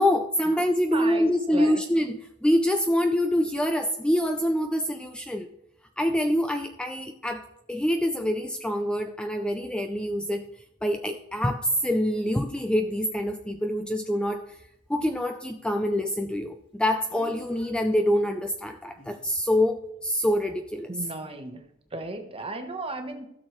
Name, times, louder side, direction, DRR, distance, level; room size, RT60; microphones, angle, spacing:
voice 1, 0.0-5.5 6.0-10.4 10.8-14.6 14.9-20.9, equal, 5° left, 6 dB, 0.4 m, -25 dB
voice 2, 0.9-1.8 20.9-21.6 21.9-23.3, right 2 dB, 25° right, 6 dB, 1.1 m, -35 dB
Speech, 11.8-11.9 17.1-17.7 19.0-19.2, left 1 dB, 80° left, 3.1 m, -45 dB
15.0 x 6.5 x 3.1 m, 0.82 s
head